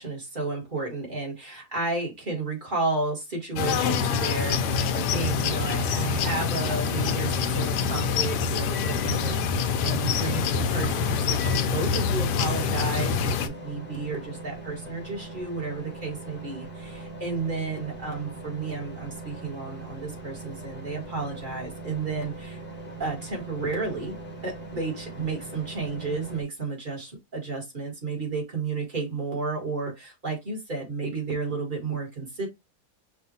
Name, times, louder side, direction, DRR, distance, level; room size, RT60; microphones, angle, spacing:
voice 1, 0.0-22.6 23.0-24.2 24.4-32.5, right 3 dB, 30° right, 1.7 m, -32 dB
sound 1, 3.6-13.5, left 6 dB, 85° left, 1.2 m, -26 dB
sound 2, 8.4-26.4, right 2 dB, 10° left, 0.8 m, -41 dB
5.5 x 2.5 x 2.7 m
omnidirectional pair, 1.7 m